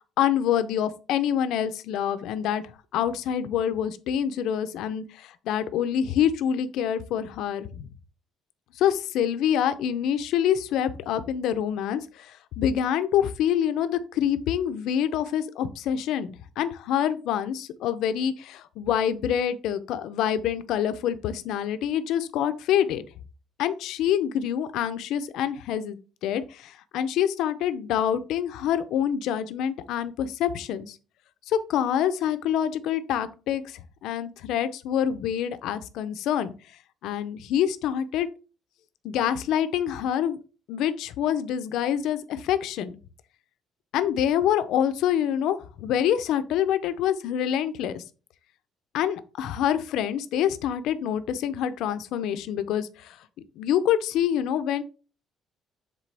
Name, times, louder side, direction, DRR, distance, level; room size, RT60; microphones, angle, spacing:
voice 1, 0.2-2.6 2.9-7.9 8.8-23.0 23.6-31.0 31.5-36.5 37.0-38.3 39.0-40.4 40.7-43.0 43.9-48.0 48.9-53.1 53.6-54.8, left 9 dB, 70° left, 11 dB, 0.6 m, -26 dB
7.4 x 3.8 x 3.4 m, 0.35 s
cardioid pair, 180°, 0 cm